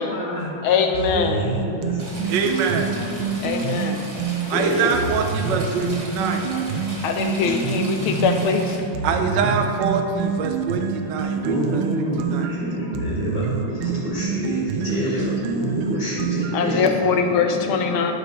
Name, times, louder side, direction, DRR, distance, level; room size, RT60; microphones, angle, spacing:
voice 1, 0.0-0.7 1.1-2.4 2.7-3.6 4.5-6.3 7.4-7.5 8.0-8.3 8.6-9.5 11.4-17.1 17.4-18.1, equal, 5° right, -13 dB, 1.9 m, -28 dB
voice 2, 0.6-1.4 3.4-4.1 7.0-8.8 16.5-18.1, left 6 dB, 80° left, 5 dB, 1.6 m, -22 dB
sound 1, 0.9-4.5 4.9-8.5 8.9-16.7, right 6 dB, 85° right, 1.5 m, -27 dB
Stream / Trickle dribble, 2.0-8.8, right 1 dB, 45° right, 2.0 m, -37 dB
voice 3, 2.3-2.9 4.5-6.5 9.0-12.1 12.3-12.5, right 5 dB, 65° right, 5 dB, 1.2 m, -24 dB
12.5 x 6.7 x 3.1 m, 2.8 s
omnidirectional pair, 2.3 m